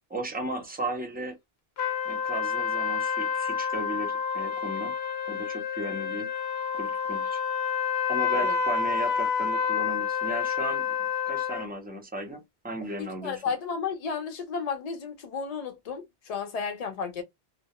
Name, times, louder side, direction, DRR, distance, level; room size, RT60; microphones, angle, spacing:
voice 1, 0.1-1.4 2.0-5.0 5.3-6.3 6.7-7.4 8.1-13.4, right 1 dB, 15° right, 0.4 m, -36 dB
sound 1, 1.8-11.7, left 6 dB, 90° left, 0.9 m, -29 dB
voice 2, 13.0-17.2, left 6 dB, 45° left, 0.6 m, -33 dB
2.1 x 2.0 x 2.9 m
omnidirectional pair, 1.0 m